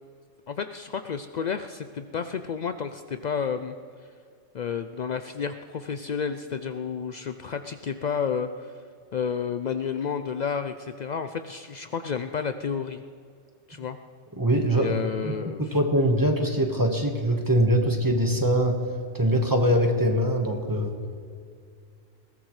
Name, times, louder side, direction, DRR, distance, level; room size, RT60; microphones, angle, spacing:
voice 1, 0.5-3.7 4.5-8.7 9.1-13.0 13.7-14.0 14.7-15.7, left 6 dB, 80° left, 9 dB, 0.3 m, -31 dB
voice 2, 14.4-15.0 15.2-15.3 15.6-18.8 19.1-20.9, equal, 15° right, 3 dB, 1.3 m, -23 dB
20.5 x 17.5 x 3.2 m, 2.2 s
omnidirectional pair, 1.3 m